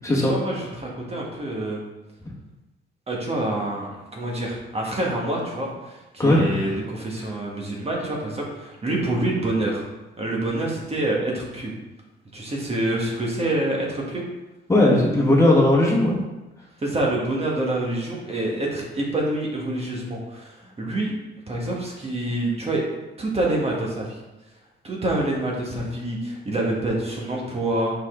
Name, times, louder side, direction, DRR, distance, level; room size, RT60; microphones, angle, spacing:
voice 1, 0.2-1.8 3.1-9.8 10.2-11.7 12.3-14.2 16.8-21.1 21.5-22.8 23.2-24.1 24.8-27.9, right 1 dB, 30° right, -2 dB, 1.6 m, -26 dB
voice 2, 6.2-6.7 14.7-16.2, left 1 dB, 15° left, -4 dB, 1.6 m, -18 dB
5.6 x 5.2 x 3.8 m, 1.0 s
cardioid pair, 90°, 20 cm